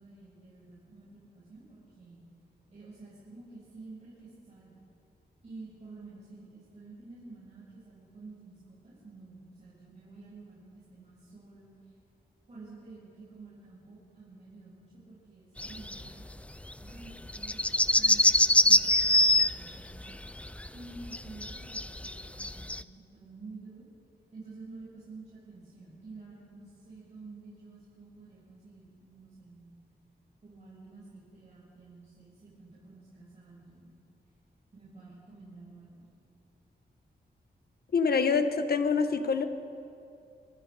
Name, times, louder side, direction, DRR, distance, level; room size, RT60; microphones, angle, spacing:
voice 1, 0.0-2.2 2.7-4.8 5.4-11.9 12.5-16.2 16.8-20.2 20.7-22.9 23.1-23.9 24.3-29.8 30.4-33.9 34.7-36.1, right 3 dB, 40° right, -9 dB, 7.5 m, -50 dB
sound 1, 15.6-16.1 16.4-16.5 16.6-16.7 17.0-22.8, left 1 dB, 5° left, 0.5 m, -24 dB
voice 2, 37.9-39.5, left 5 dB, 65° left, 8 dB, 1.6 m, -26 dB
29.0 x 25.0 x 5.2 m, 2.5 s
wide cardioid pair, 150°, 17 cm